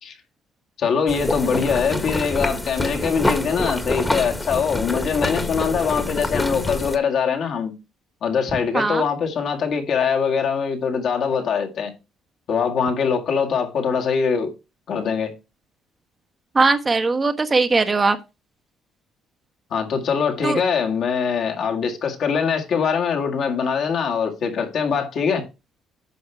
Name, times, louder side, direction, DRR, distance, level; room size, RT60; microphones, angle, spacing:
voice 1, 0.8-7.7 8.2-11.9 12.5-14.5 14.9-15.3 19.7-25.5, left 6 dB, 60° left, 2.0 m, -23 dB
sound 1, 1.1-7.0, left 2 dB, 15° left, 1.5 m, -26 dB
voice 2, 16.5-18.2 20.4-20.6, right 3 dB, 30° right, 1.2 m, -19 dB
9.3 x 5.7 x 4.7 m
supercardioid pair, 80°, 0 cm